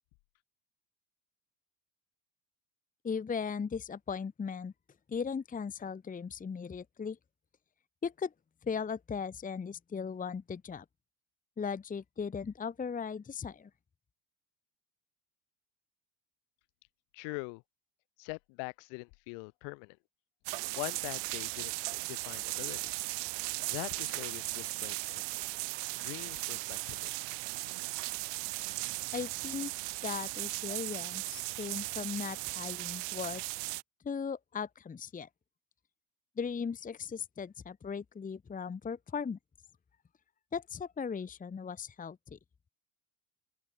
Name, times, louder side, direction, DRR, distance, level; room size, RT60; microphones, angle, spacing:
voice 1, 3.0-4.7 5.1-7.2 8.0-8.3 8.6-10.8 11.6-13.7 29.1-29.7 30.0-33.4 34.0-35.3 36.4-39.4 40.5-42.4, left 6 dB, 20° left, 1.0 m, -37 dB
voice 2, 17.1-17.6 18.2-20.0 20.8-22.9 23.7-25.2 26.0-27.0, left 37 dB, 70° left, 4.1 m, -43 dB
sound 1, 20.5-33.8, right 29 dB, 65° right, 1.3 m, -37 dB
open air
supercardioid pair, 90°, 44 cm